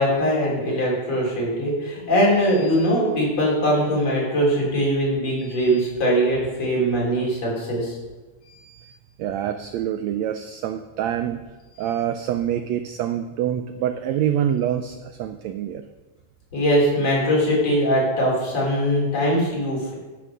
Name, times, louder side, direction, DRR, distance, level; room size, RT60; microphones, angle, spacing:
voice 1, 0.0-7.9 8.5-8.9 16.5-19.9, equal, 50° left, -4 dB, 4.4 m, -21 dB
voice 2, 9.2-11.4 11.8-15.8, right 10 dB, 80° right, 7 dB, 1.6 m, -26 dB
10.0 x 8.1 x 6.0 m, 1.2 s
omnidirectional pair, 3.7 m